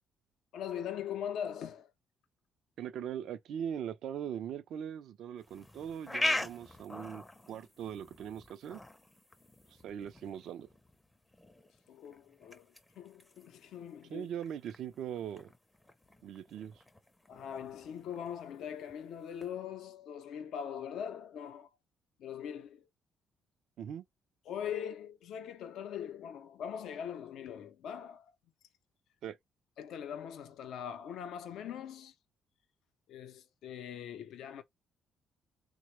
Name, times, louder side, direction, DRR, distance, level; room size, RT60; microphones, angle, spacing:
voice 1, 0.5-1.9 11.9-14.3 17.3-21.7 22.2-22.9 24.5-28.3 29.8-32.1 33.1-34.6, left 8 dB, 75° left, 0.5 m, -41 dB
voice 2, 2.8-8.8 9.8-10.7 14.1-15.5 16.2-16.8 23.8-24.0 29.2-29.4, right 9 dB, 70° right, 0.4 m, -40 dB
sound 1, 5.4-19.5, left 2 dB, 15° left, 0.5 m, -43 dB
3.2 x 2.1 x 3.0 m
cardioid pair, 85°, 0 cm